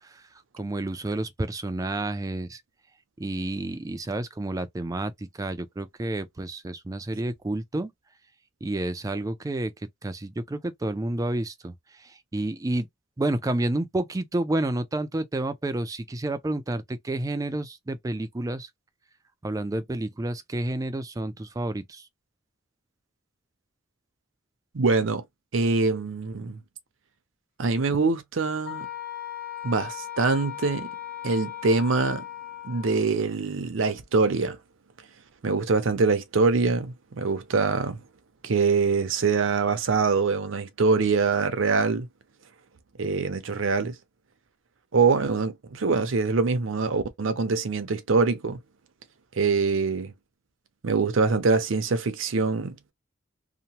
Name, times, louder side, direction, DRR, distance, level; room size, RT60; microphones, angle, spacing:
voice 1, 0.6-2.6 3.2-5.1 5.4-7.9 8.6-9.7 10.0-11.7 12.3-12.9 13.2-18.7 19.4-22.0, right 2 dB, 15° right, 0.3 m, -30 dB
voice 2, 24.7-25.2 25.5-26.6 27.6-28.9 29.6-30.9 31.2-32.2 32.6-34.6 35.4-38.0 38.4-42.1 43.0-43.9 44.9-48.6 49.4-50.1 50.8-52.9, right 4 dB, 70° right, 0.6 m, -24 dB
Wind instrument woodwind instrument, 28.6-33.0, left 12 dB, 45° left, 0.8 m, -37 dB
2.9 x 2.1 x 2.8 m
head